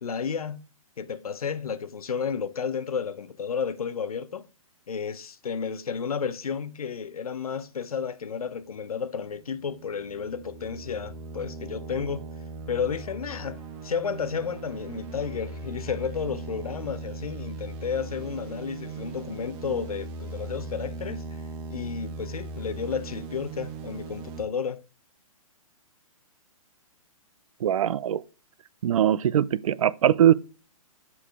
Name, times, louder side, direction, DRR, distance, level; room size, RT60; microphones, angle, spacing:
voice 1, 0.0-0.6 1.0-4.4 4.9-12.2 12.7-21.2 21.7-24.8, left 6 dB, 90° left, 0.7 m, -32 dB
sound 1, 9.3-24.5, right 3 dB, 25° right, 1.0 m, -39 dB
voice 2, 27.6-28.2 28.8-30.3, right 10 dB, 65° right, 0.5 m, -21 dB
7.0 x 4.8 x 3.5 m
hypercardioid pair, 135°, 18 cm